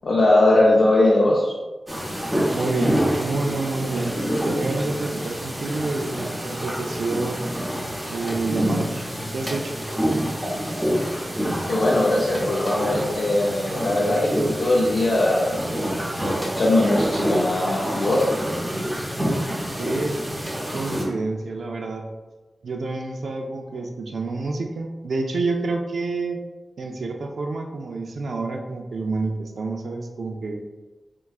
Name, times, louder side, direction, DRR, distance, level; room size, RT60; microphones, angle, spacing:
voice 1, 0.0-1.6 11.6-15.6 16.3-18.3, left 1 dB, 65° left, -5 dB, 0.5 m, -20 dB
sound 1, 1.9-21.1, equal, 5° right, 0.8 m, -27 dB
voice 2, 2.5-4.1 4.4-7.4 8.1-9.0 9.3-9.8 19.8-20.2 20.7-22.1 22.6-26.4 26.8-30.6, right 3 dB, 90° right, 3 dB, 0.4 m, -28 dB
4.5 x 2.3 x 2.3 m, 1.2 s
wide cardioid pair, 120°, 0 cm